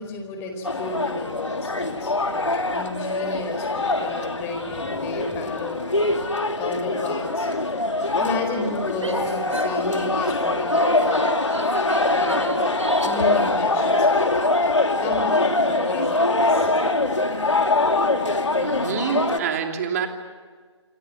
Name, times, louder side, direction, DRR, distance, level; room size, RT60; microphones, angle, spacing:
voice 1, 0.0-7.5 8.0-11.4 12.0-12.7 13.0-14.4 15.0-16.7 19.7-19.8, left 3 dB, 15° left, 4 dB, 4.5 m, -32 dB
sound 1, 0.6-19.4, left 2 dB, 80° left, 2.6 m, -23 dB
Female speech woman speaking / Yell, 8.9-10.2 10.7-13.3, right 1 dB, 80° right, 7.0 m, -31 dB
voice 2, 18.6-20.1, right 7 dB, 30° right, 4 dB, 3.0 m, -26 dB
28.5 x 24.5 x 7.6 m, 1.5 s
figure-of-eight pair, 145°, 15 cm